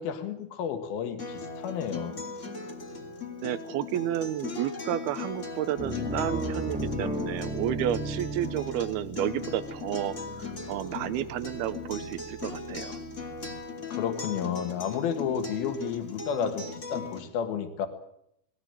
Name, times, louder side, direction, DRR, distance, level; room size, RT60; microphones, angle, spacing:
voice 1, 0.0-2.2 13.9-17.9, left 7 dB, 70° left, 8 dB, 3.6 m, -31 dB
Acoustic guitar, 1.2-17.2, left 4 dB, 20° left, 2.3 m, -38 dB
voice 2, 3.4-13.0, right 11 dB, 80° right, 13 dB, 2.9 m, -31 dB
sound 1, 5.8-13.7, right 1 dB, 5° right, 0.8 m, -37 dB
21.0 x 17.5 x 9.0 m, 0.76 s
omnidirectional pair, 4.5 m